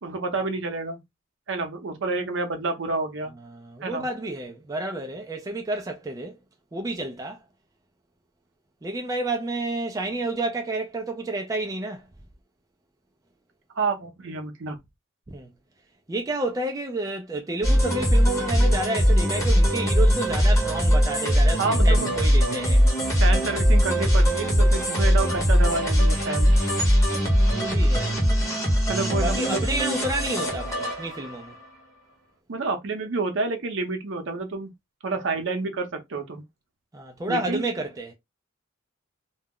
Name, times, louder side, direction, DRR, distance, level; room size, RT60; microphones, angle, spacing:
voice 1, 0.0-1.0 1.5-3.4 3.8-4.1 13.7-14.8 21.6-22.1 23.2-26.6 28.9-29.6 32.5-34.7 35.0-36.4 37.3-37.6, right 3 dB, 60° right, 0.7 m, -29 dB
voice 2, 3.5-6.4 6.7-7.4 8.8-12.0 15.3-15.5 16.1-22.8 27.5-28.1 29.2-31.5 36.9-38.1, right 2 dB, 15° right, 0.3 m, -30 dB
sound 1, 17.6-31.5, equal, 15° left, 0.9 m, -21 dB
2.2 x 2.0 x 3.6 m
head